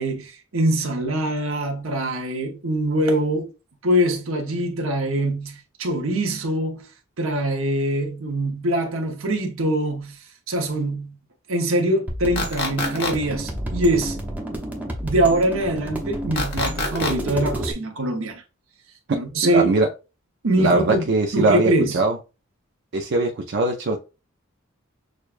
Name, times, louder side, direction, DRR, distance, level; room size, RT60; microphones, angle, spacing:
voice 1, 0.0-3.5 3.8-6.9 7.2-10.2 10.5-11.2 11.5-14.2 15.0-18.4 19.1-19.7 20.4-21.0 21.3-22.0, right 1 dB, 80° right, 1.0 m, -23 dB
sound 1, 12.1-17.7, right 1 dB, 10° right, 0.7 m, -30 dB
sound 2, 12.4-13.1 16.4-17.1, left 3 dB, 50° left, 1.1 m, -25 dB
voice 2, 19.1-19.9 20.6-22.2 22.9-24.0, right 2 dB, 55° right, 0.5 m, -21 dB
6.4 x 2.2 x 2.5 m
head